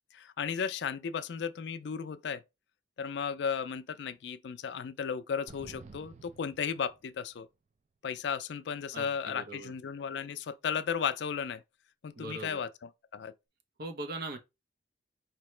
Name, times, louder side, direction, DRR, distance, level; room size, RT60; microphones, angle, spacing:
voice 1, 0.1-2.4 3.0-7.5 8.0-11.6 12.0-13.3, left 6 dB, 65° left, 0.4 m, -35 dB
sound 1, 5.5-7.4, right 4 dB, 40° right, 0.5 m, -52 dB
voice 2, 8.9-9.7 12.2-12.6 13.8-14.4, right 2 dB, 55° right, 0.8 m, -40 dB
4.6 x 2.8 x 3.1 m
head